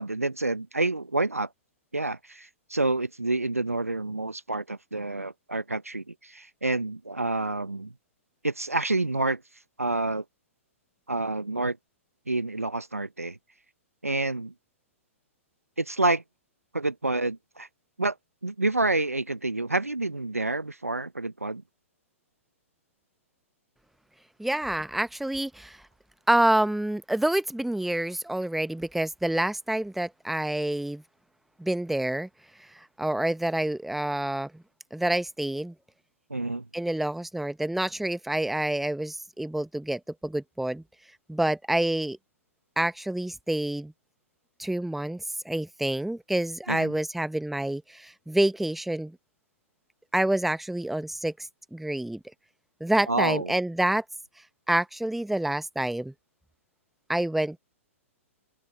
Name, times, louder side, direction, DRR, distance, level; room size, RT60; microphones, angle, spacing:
voice 1, 0.0-1.5 1.9-7.9 8.4-9.4 9.8-10.2 11.1-11.8 12.3-13.4 14.0-14.5 15.8-16.2 16.7-17.7 18.0-18.1 18.4-21.6 36.3-36.7 46.7-46.9 53.1-53.5, right 2 dB, 90° right, 1.2 m, -28 dB
voice 2, 24.4-25.8 26.3-31.0 31.6-32.3 32.7-34.6 34.9-35.7 36.7-40.8 41.3-42.2 42.8-43.9 44.6-49.2 50.1-51.3 51.7-52.2 52.8-54.0 54.7-56.1 57.1-57.6, right 1 dB, ahead, 1.1 m, -27 dB
open air
figure-of-eight pair, 110°, 8 cm